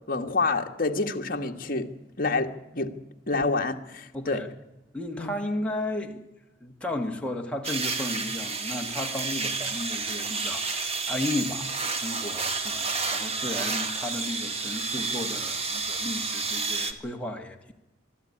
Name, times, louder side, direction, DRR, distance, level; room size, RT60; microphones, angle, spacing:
voice 1, 0.1-1.9 2.2-2.9 3.3-4.4 5.2-5.3, left 3 dB, 50° left, 4 dB, 1.6 m, -27 dB
voice 2, 4.1-4.5 4.9-6.2 6.6-17.7, left 1 dB, 5° left, 1 dB, 2.0 m, -34 dB
sound 1, 7.6-16.9, right 4 dB, 35° right, 1.5 m, -30 dB
23.0 x 12.5 x 9.8 m, 1.0 s
head